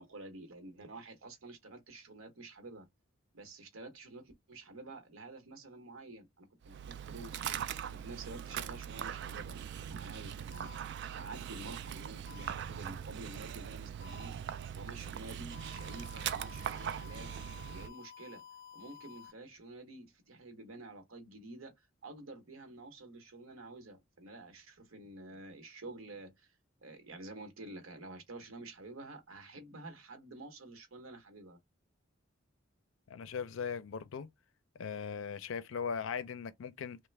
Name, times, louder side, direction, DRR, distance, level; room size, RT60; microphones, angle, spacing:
voice 1, 0.0-2.9 3.3-7.4 7.9-10.8 11.1-17.3 17.6-18.4 18.7-26.5 26.8-31.6, right 2 dB, 90° right, 0.9 m, -49 dB
Dog, 6.6-17.9, right 9 dB, 55° right, 0.3 m, -41 dB
sound 1, 10.5-10.8 12.3-12.5 14.0-14.3 15.5-19.3, left 9 dB, 20° left, 1.8 m, -52 dB
voice 2, 33.1-34.3 34.8-37.0, left 6 dB, 70° left, 0.4 m, -39 dB
3.2 x 2.0 x 3.2 m
head